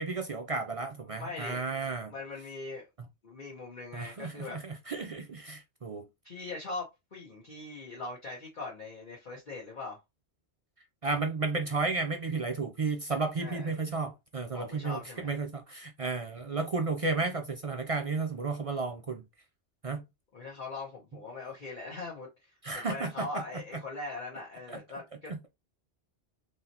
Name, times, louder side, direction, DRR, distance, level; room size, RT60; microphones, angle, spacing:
voice 1, 0.0-2.1 3.9-6.1 11.0-19.2 19.8-20.0 22.6-23.3, right 3 dB, 50° right, 0.4 m, -33 dB
voice 2, 1.2-1.6 2.1-2.9 3.2-4.6 6.2-10.0 13.4-13.7 14.5-15.3 20.3-25.5, left 3 dB, 45° left, 1.3 m, -41 dB
3.9 x 3.1 x 2.8 m
omnidirectional pair, 1.2 m